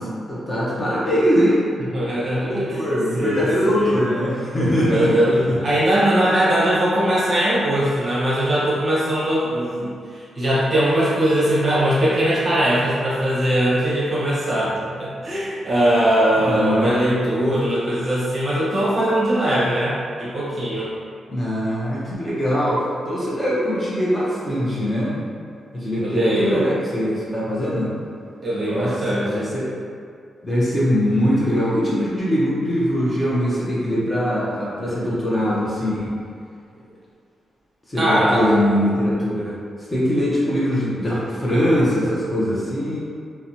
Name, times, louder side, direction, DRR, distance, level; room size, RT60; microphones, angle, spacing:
voice 1, 0.0-1.6 2.3-5.1 5.5-5.6 16.4-16.9 17.5-17.6 21.3-25.2 25.7-27.9 28.6-29.7 30.4-36.1 37.9-39.5 39.9-43.0, equal, 20° left, -8 dB, 0.6 m, -22 dB
voice 2, 1.9-2.8 3.2-3.9 4.8-20.9 26.0-26.6 28.4-29.5 38.0-38.5, right 1 dB, 35° right, -8 dB, 0.7 m, -20 dB
2.8 x 2.1 x 2.6 m, 2.3 s
wide cardioid pair, 130°, 0 cm